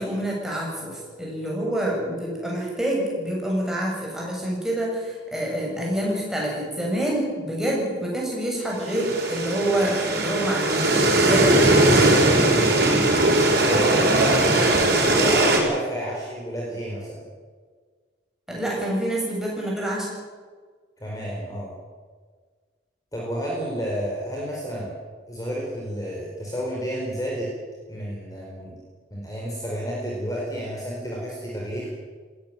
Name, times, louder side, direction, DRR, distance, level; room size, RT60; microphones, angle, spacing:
voice 1, 0.0-11.5 18.5-20.1, right 1 dB, ahead, -3 dB, 7.4 m, -27 dB
sound 1, 8.8-15.6, right 2 dB, 55° right, 6.1 m, -19 dB
voice 2, 12.4-12.8 13.4-14.5 15.0-17.2 21.0-21.7 23.1-24.9 25.3-27.5 27.9-28.8 29.1-31.9, equal, 20° left, -3 dB, 4.5 m, -30 dB
20.0 x 17.0 x 9.1 m, 1.5 s
head